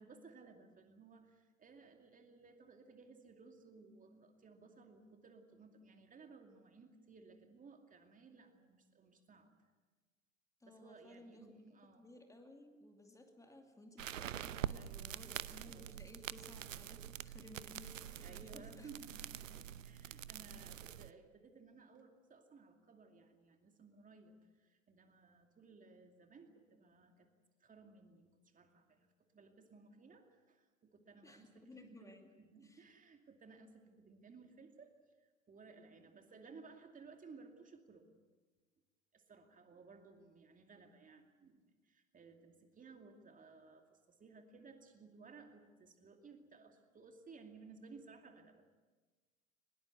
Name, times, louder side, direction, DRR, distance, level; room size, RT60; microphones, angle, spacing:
voice 1, 0.0-9.5 10.6-12.1 14.7-16.1 18.2-27.3 27.6-38.1 39.1-48.7, right 4 dB, 20° right, 5 dB, 2.5 m, -59 dB
voice 2, 10.6-18.9 19.4-19.5 31.2-32.3 32.6-32.8, left 1 dB, 10° left, 4 dB, 2.5 m, -58 dB
sound 1, 14.0-21.1, right 10 dB, 75° right, 0.9 m, -45 dB
23.0 x 21.0 x 8.3 m, 1.3 s
figure-of-eight pair, 90°, 40 cm